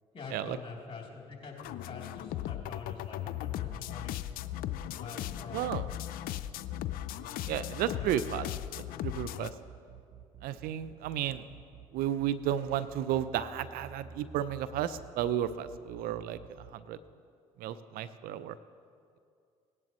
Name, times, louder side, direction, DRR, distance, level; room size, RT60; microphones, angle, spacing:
voice 1, 0.1-1.6 1.9-4.2 5.0-5.8 7.9-8.2, left 4 dB, 35° left, -1 dB, 3.1 m, -45 dB
sound 1, 1.6-9.5, left 12 dB, 65° left, 0.5 m, -37 dB
voice 2, 5.5-5.9 7.5-8.5 9.0-9.5 10.4-11.4 11.9-16.4 16.7-17.0 17.6-18.6, right 11 dB, 65° right, 14 dB, 0.5 m, -33 dB
sound 2, 9.4-16.7, right 6 dB, 45° right, 0.9 m, -50 dB
18.0 x 11.0 x 3.0 m, 2.3 s
hypercardioid pair, 60°, 16 cm